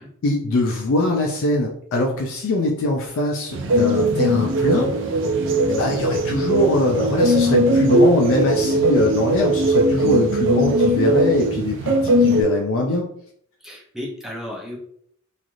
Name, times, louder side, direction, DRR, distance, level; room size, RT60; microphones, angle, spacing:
voice 1, 0.2-4.9 5.7-13.1, left 1 dB, 65° left, 0 dB, 0.4 m, -22 dB
sound 1, 3.5-12.4, right 1 dB, 60° right, 0.4 m, -19 dB
voice 2, 13.6-14.8, left 1 dB, ahead, -3 dB, 0.6 m, -33 dB
3.2 x 2.4 x 2.5 m, 0.65 s
head